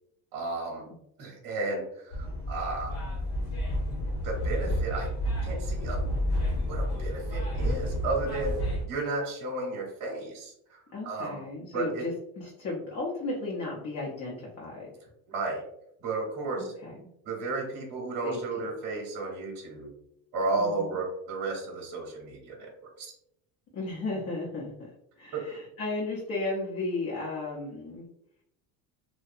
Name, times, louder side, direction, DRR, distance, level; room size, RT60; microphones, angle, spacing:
voice 1, 0.3-0.8 1.2-3.0 4.2-5.1 5.4-6.0 6.7-8.6 8.9-11.4 11.7-12.1 15.3-15.6 16.0-16.7 17.3-19.9 20.3-23.1 25.3-25.5, right 3 dB, 65° right, -3 dB, 0.9 m, -33 dB
sound 1, 2.1-8.8, equal, 80° left, 1.0 m, -30 dB
voice 2, 10.9-14.9 16.6-17.0 18.2-18.4 20.6-21.0 23.7-24.9 25.2-28.1, left 2 dB, 40° left, -4 dB, 0.7 m, -34 dB
2.7 x 2.2 x 2.4 m, 0.78 s
cardioid pair, 105°, 38 cm